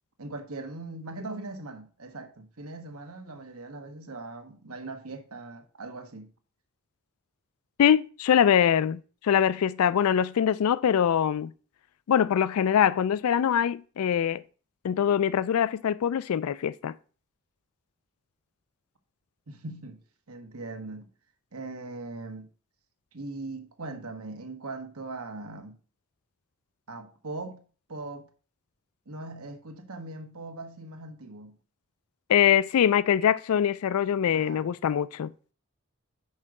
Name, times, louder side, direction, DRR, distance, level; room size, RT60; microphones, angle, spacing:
voice 1, 0.2-6.3 19.5-20.0 20.3-21.1 21.5-22.5 23.1-25.8 26.9-27.6 27.9-28.3 29.1-31.6 34.3-34.7, right 2 dB, 90° right, 1.3 m, -40 dB
voice 2, 7.8-11.5 12.1-14.4 14.8-16.9 32.3-35.3, left 9 dB, 80° left, 0.3 m, -23 dB
5.5 x 4.8 x 6.4 m
head